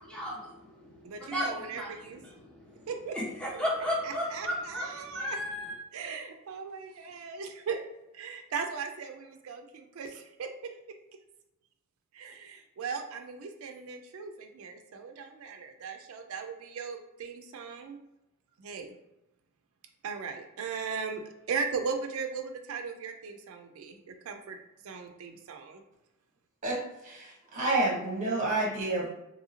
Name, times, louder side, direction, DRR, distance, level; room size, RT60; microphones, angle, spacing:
voice 1, 0.0-5.8, equal, 5° left, -7 dB, 1.0 m, -35 dB
voice 2, 1.0-2.2 2.9-3.1 4.0-5.4 5.9-7.8 8.1-10.5 12.1-18.0 18.6-19.0 20.0-24.6 24.8-25.8, right 5 dB, 75° right, 4 dB, 0.4 m, -38 dB
voice 3, 26.6-29.1, right 2 dB, 35° right, -2 dB, 1.0 m, -29 dB
2.7 x 2.7 x 2.8 m, 0.91 s
head